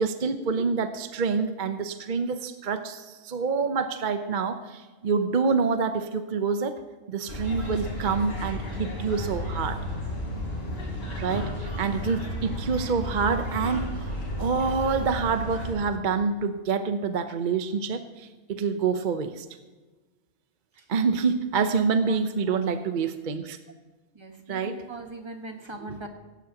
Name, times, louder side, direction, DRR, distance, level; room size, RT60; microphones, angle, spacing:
voice 1, 0.0-6.8 7.1-9.8 11.2-19.5 20.9-23.6 24.5-24.9 25.8-26.0, right 5 dB, 45° right, 9 dB, 0.7 m, -27 dB
sound 1, 7.3-15.7, left 1 dB, 45° left, 4.1 m, -33 dB
voice 2, 21.6-22.2 22.5-22.6 24.1-26.1, right 2 dB, 20° right, 4 dB, 1.4 m, -41 dB
17.0 x 16.5 x 2.9 m, 1.2 s
omnidirectional pair, 1.5 m